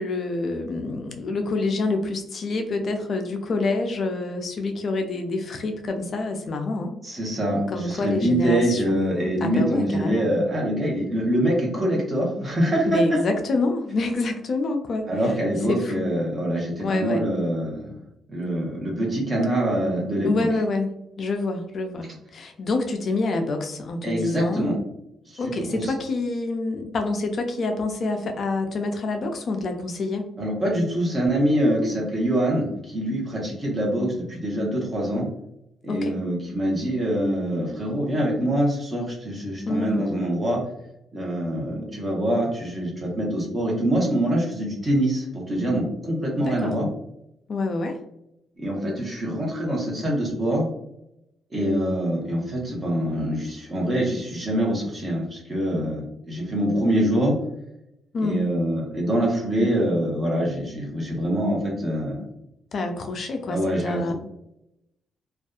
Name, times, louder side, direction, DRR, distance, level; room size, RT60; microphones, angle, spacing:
voice 1, 0.0-7.0 7.7-10.3 12.9-15.4 15.7-16.1 16.8-17.3 20.2-24.7 25.4-30.3 35.9-36.2 39.7-40.1 46.4-46.7 47.5-48.0 58.1-58.4 62.7-64.1, left 3 dB, 50° left, 5 dB, 0.3 m, -27 dB
voice 2, 7.0-13.2 15.1-17.9 18.3-20.3 24.0-24.8 25.3-25.4 25.7-25.8 30.4-35.3 35.8-40.6 41.1-46.9 48.6-50.7 51.5-57.3 58.2-62.2 63.5-64.1, right 1 dB, 25° right, -2 dB, 0.9 m, -24 dB
2.6 x 2.3 x 2.3 m, 0.81 s
cardioid pair, 130°, 0 cm